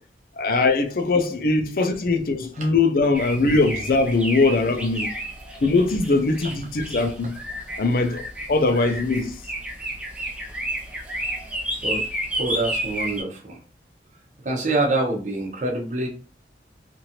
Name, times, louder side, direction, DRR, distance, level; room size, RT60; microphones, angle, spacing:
voice 1, 0.4-5.1 5.6-7.4 7.8-9.4, left 3 dB, 55° left, 0.5 m, -21 dB
sound 1, 3.1-13.2, right 1 dB, 5° right, 0.5 m, -32 dB
voice 2, 12.4-13.6 14.4-16.1, right 2 dB, 45° right, 0.8 m, -25 dB
3.0 x 2.6 x 2.8 m
head